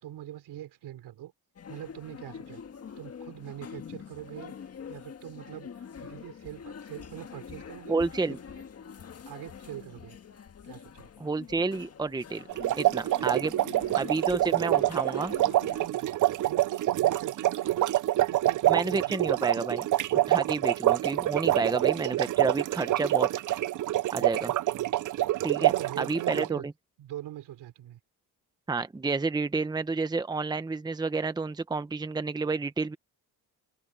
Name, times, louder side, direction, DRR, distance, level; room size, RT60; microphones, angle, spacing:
voice 1, 0.0-1.3 1.7-2.6 3.0-4.6 4.9-8.0 8.3-8.6 9.3-10.2 10.6-11.1 13.3-14.0 14.4-14.8 15.1-16.1 16.4-18.0 18.3-19.3 22.0-22.5 24.1-24.9 25.5-26.7 27.0-28.0, right 13 dB, 75° right, 3.5 m, -43 dB
sound 1, 1.6-15.9, left 7 dB, 35° left, 1.7 m, -45 dB
voice 2, 7.9-8.4 11.2-12.5 12.8-13.5 14.0-15.3 18.7-19.9 20.3-23.3 24.1-24.5 25.4-26.7 28.7-33.0, right 3 dB, 10° right, 0.8 m, -30 dB
sound 2, 12.5-26.5, right 15 dB, 50° right, 0.6 m, -26 dB
open air
cardioid pair, 130°, 40 cm